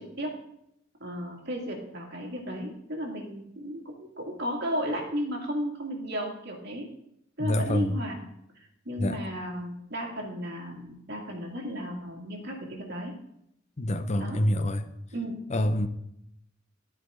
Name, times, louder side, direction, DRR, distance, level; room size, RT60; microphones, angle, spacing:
voice 1, 1.0-6.9 7.4-8.2 8.9-13.1 14.2-14.4 15.1-15.4, equal, 55° right, 2.1 m, -34 dB
voice 2, 7.4-8.0 9.0-9.2 13.8-14.9 15.5-15.9, left 1 dB, 35° left, 0.6 m, -26 dB
12.5 x 5.0 x 4.9 m
head